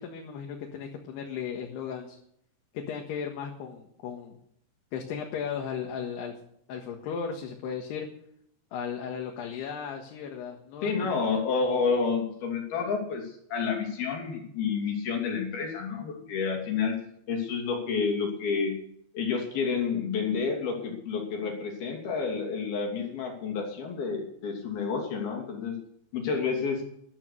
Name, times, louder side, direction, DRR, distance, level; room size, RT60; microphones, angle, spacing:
voice 1, 0.0-2.2 2.7-4.4 4.9-6.3 6.7-8.1 8.7-10.9, left 7 dB, 90° left, 1 dB, 3.7 m, -36 dB
voice 2, 10.8-17.0 17.3-18.7 19.1-25.8 26.1-26.8, left 5 dB, 70° left, 2 dB, 4.6 m, -29 dB
13.5 x 12.0 x 6.8 m, 0.69 s
omnidirectional pair, 4.6 m